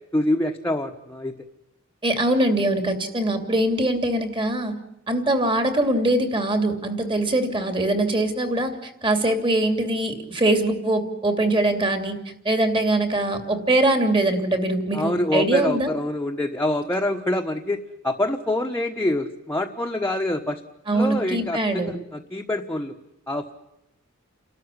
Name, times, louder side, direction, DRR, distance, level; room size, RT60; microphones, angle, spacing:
voice 1, 0.1-1.3 14.9-20.6 20.9-23.0 23.3-23.5, left 1 dB, 10° left, 2 dB, 1.2 m, -26 dB
voice 2, 2.0-4.7 5.1-12.1 12.4-15.9 20.9-21.9, right 1 dB, 25° right, 7 dB, 2.9 m, -22 dB
30.0 x 13.0 x 9.9 m, 0.86 s
head